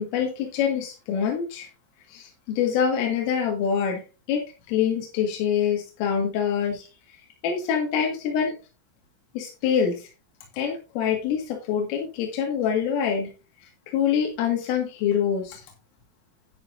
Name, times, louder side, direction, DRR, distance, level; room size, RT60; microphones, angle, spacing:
voice 1, 0.0-1.7 2.1-4.0 4.3-6.8 7.4-8.5 9.4-10.0 10.6-13.3 13.9-15.6, left 7 dB, 85° left, 1 dB, 4.4 m, -25 dB
11.0 x 10.0 x 2.6 m, 0.30 s
omnidirectional pair, 5.6 m